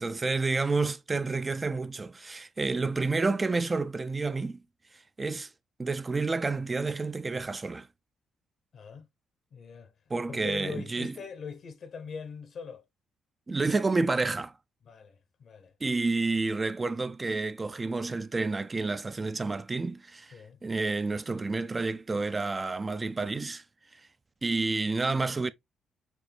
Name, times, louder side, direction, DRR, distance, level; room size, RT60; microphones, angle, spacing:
voice 1, 0.0-4.6 4.9-5.5 5.8-7.9 10.1-11.1 13.5-14.5 15.8-23.6 23.9-24.0 24.4-25.5, right 3 dB, 25° right, 0.3 m, -29 dB
voice 2, 8.7-9.1 9.5-9.9 10.3-12.8 14.8-15.7 20.3-20.6, left 6 dB, 55° left, 0.7 m, -42 dB
6.0 x 2.6 x 3.2 m
cardioid pair, 90°, 0 cm